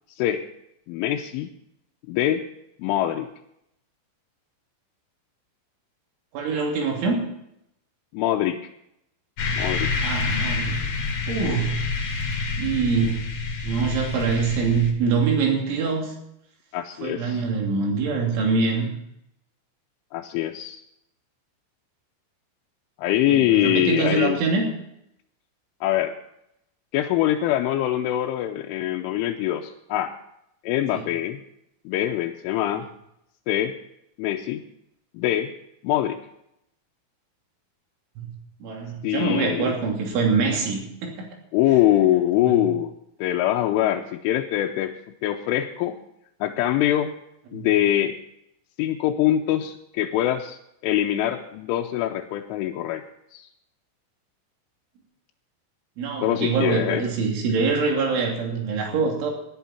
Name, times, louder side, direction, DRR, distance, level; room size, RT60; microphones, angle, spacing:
voice 1, 0.9-1.5 2.1-2.4 2.8-3.3 8.1-8.6 9.5-9.9 16.7-17.4 20.1-20.8 23.0-24.4 25.8-26.1 26.9-30.1 30.6-31.4 31.9-32.9 33.5-33.7 34.2-34.6 35.1-35.5 35.8-36.2 39.0-39.8 41.5-42.9 43.2-44.9 45.2-46.0 46.4-47.1 47.5-48.2 48.8-50.6 50.8-53.0 53.3-53.5 56.2-57.1, left 12 dB, 90° left, 1 dB, 3.2 m, -23 dB
voice 2, 6.3-7.2 10.0-11.7 12.1-13.2 13.6-16.1 17.0-18.9 23.3-24.7 30.9-31.1 38.2-38.3 38.6-41.3 42.4-42.7 47.5-47.7 56.0-59.3, right 5 dB, 75° right, 1 dB, 5.3 m, -24 dB
sound 1, 9.4-14.9, left 4 dB, 45° left, 2.5 m, -27 dB
18.0 x 11.5 x 4.3 m, 0.78 s
omnidirectional pair, 5.5 m